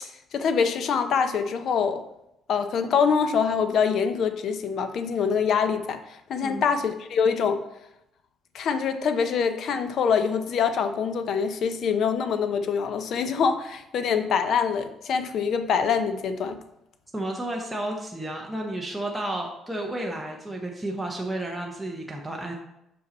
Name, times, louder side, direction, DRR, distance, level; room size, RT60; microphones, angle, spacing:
voice 1, 0.3-2.0 2.5-7.6 8.5-16.6, left 6 dB, 55° left, 9 dB, 0.6 m, -25 dB
voice 2, 17.1-22.6, right 1 dB, 5° right, 0 dB, 0.7 m, -32 dB
5.6 x 5.3 x 4.1 m, 0.84 s
cardioid pair, 130°, 0 cm